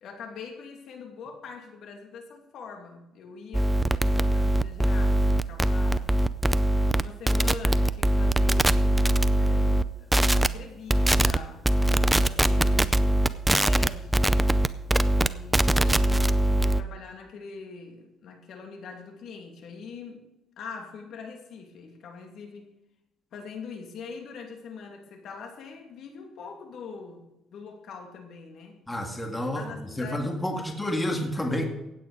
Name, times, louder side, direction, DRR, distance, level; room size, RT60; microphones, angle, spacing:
voice 1, 0.0-6.1 6.9-9.0 9.4-11.7 12.2-14.4 15.1-20.2 20.6-22.7 23.3-28.8 29.3-30.3, left 5 dB, 65° left, 3 dB, 2.6 m, -43 dB
sound 1, 3.5-9.8 10.1-10.5 10.9-11.4 11.6-16.8, right 1 dB, 10° right, 0.5 m, -22 dB
voice 2, 28.9-29.6 30.0-31.6, left 1 dB, 10° left, 3 dB, 2.1 m, -29 dB
16.0 x 9.0 x 5.0 m, 0.91 s
cardioid pair, 120°, 0 cm